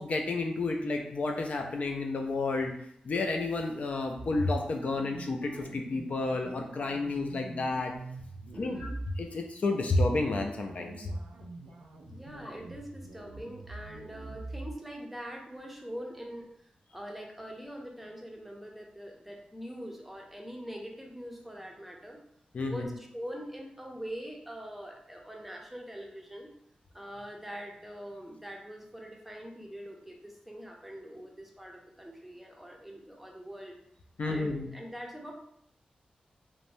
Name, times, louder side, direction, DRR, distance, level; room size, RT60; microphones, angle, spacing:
voice 1, 0.0-2.7 3.1-7.9 8.6-8.9 9.2-11.1 22.5-22.9 34.2-34.7, left 2 dB, 60° left, 3 dB, 0.3 m, -31 dB
sound 1, 4.2-9.3 9.6-9.9 10.3-14.7, right 2 dB, 85° right, 0.3 m, -45 dB
voice 2, 8.5-8.9 12.0-16.5 16.9-22.2 22.6-26.5 26.9-33.7 34.2-35.3, equal, 5° right, 0 dB, 0.5 m, -43 dB
3.0 x 2.1 x 2.6 m, 0.72 s
cardioid pair, 65°, 3 cm